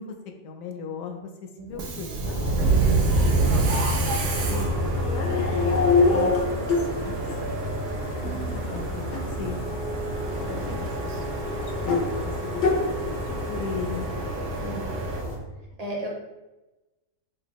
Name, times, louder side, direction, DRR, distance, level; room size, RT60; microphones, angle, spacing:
voice 1, 0.0-2.8 3.5-4.7 5.0-7.6 8.2-9.0 9.4-9.6 10.7-11.2 11.8-13.2 13.5-14.1, left 5 dB, 70° left, 4 dB, 0.9 m, -38 dB
Subway metro underground, 1.7-15.2, right 3 dB, 80° right, 1.2 m, -28 dB
sound 1, 2.2-15.4, left 1 dB, 40° left, 0.3 m, -32 dB
sound 2, 5.1-6.9 7.3-7.4 9.0-9.2 10.4-10.6 11.8-12.0 12.5-12.8, left 4 dB, 90° left, 1.4 m, -22 dB
voice 2, 14.6-14.9 15.8-16.1, right 1 dB, 40° right, -3 dB, 0.5 m, -35 dB
6.2 x 2.3 x 3.0 m, 1.1 s
omnidirectional pair, 1.7 m